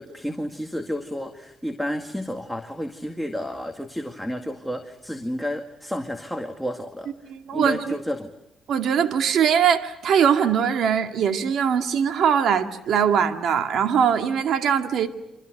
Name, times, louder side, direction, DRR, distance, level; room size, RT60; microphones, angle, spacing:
voice 1, 0.0-8.3, equal, ahead, 2.1 m, -31 dB
voice 2, 7.3-8.0 8.7-15.1, right 7 dB, 70° right, 2.3 m, -21 dB
29.5 x 26.0 x 6.7 m
cardioid pair, 90°, 0 cm